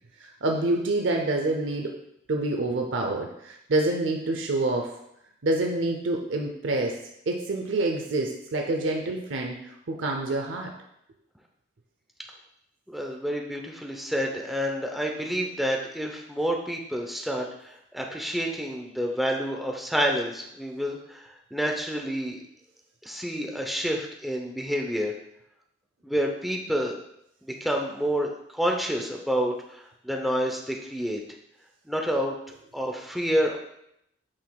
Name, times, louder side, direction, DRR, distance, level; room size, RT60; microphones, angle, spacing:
voice 1, 0.2-1.9 2.3-4.9 5.4-7.0 7.3-10.7, right 2 dB, 85° right, 2 dB, 0.7 m, -27 dB
voice 2, 12.9-22.4 23.0-25.2 26.0-27.0 27.4-31.2 31.9-32.3 32.7-33.6, equal, ahead, 0 dB, 0.7 m, -28 dB
8.8 x 5.7 x 2.3 m, 0.78 s
head